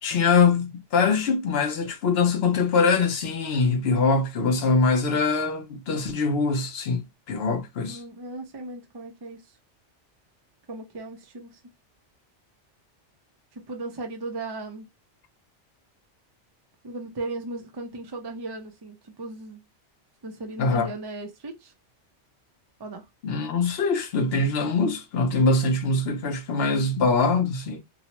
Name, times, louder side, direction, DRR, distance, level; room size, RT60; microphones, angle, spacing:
voice 1, 0.0-8.0 20.6-20.9 23.2-27.8, left 4 dB, 65° left, 0.8 m, -23 dB
voice 2, 7.9-9.5 10.7-11.6 13.5-14.9 16.8-19.6 20.2-21.7 22.8-23.1, right 2 dB, 40° right, 0.3 m, -37 dB
2.8 x 2.0 x 2.8 m
omnidirectional pair, 1.2 m